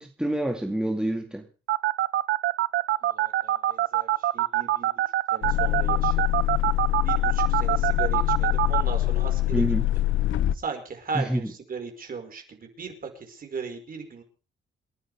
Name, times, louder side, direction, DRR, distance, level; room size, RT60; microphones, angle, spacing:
voice 1, 0.0-1.4 9.5-9.9 11.1-11.4, right 1 dB, 5° right, 2.2 m, -27 dB
sound 1, 1.7-8.8, right 14 dB, 75° right, 0.7 m, -23 dB
voice 2, 3.0-5.0 5.3-6.2 7.0-9.7 10.5-14.2, right 5 dB, 45° right, 5.4 m, -37 dB
sound 2, 5.4-10.5, left 15 dB, 80° left, 0.7 m, -24 dB
28.0 x 11.0 x 3.6 m
cardioid pair, 90°, 20 cm